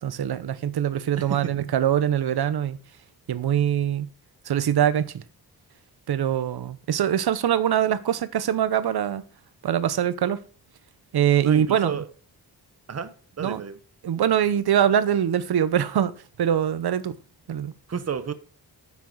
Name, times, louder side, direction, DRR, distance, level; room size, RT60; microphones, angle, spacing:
voice 1, 0.0-2.8 3.3-4.1 4.5-5.2 6.1-9.2 9.6-10.4 11.1-11.9 13.4-13.6 14.0-16.1 16.4-17.2 17.5-17.7, right 9 dB, 75° right, 0.8 m, -23 dB
voice 2, 1.2-1.5 11.4-12.1 12.9-13.8 17.9-18.3, right 7 dB, 40° right, 0.8 m, -31 dB
9.4 x 7.2 x 4.6 m
wide cardioid pair, 155°, 39 cm